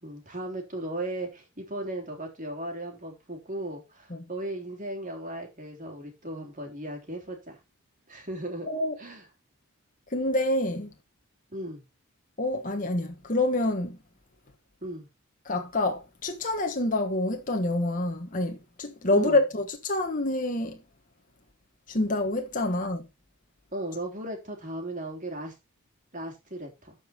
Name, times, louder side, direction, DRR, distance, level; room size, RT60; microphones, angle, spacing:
voice 1, 0.0-7.6 8.1-8.7 9.0-9.2 11.5-11.8 14.8-15.1 19.1-19.4 23.7-25.5 26.1-27.0, right 1 dB, 35° right, 3.3 m, -36 dB
voice 2, 8.6-8.9 10.1-10.9 12.4-14.0 15.4-20.8 21.9-23.0, left 2 dB, 35° left, 1.3 m, -27 dB
13.0 x 5.4 x 4.3 m
head